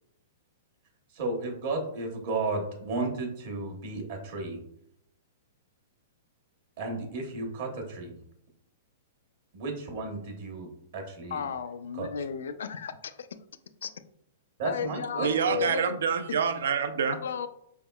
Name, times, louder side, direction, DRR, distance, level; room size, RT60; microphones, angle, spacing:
voice 1, 1.1-4.6 6.8-8.2 9.5-10.7 10.9-11.4 11.9-12.1 14.6-15.6, right 3 dB, 60° right, 1 dB, 1.0 m, -33 dB
voice 2, 11.3-13.3 13.8-13.9 14.6-15.9 17.2-17.5, left 7 dB, 85° left, 11 dB, 0.3 m, -34 dB
voice 3, 15.2-17.2, right 6 dB, 80° right, 9 dB, 0.4 m, -27 dB
5.0 x 3.5 x 2.3 m, 0.74 s
hypercardioid pair, 145°, 0 cm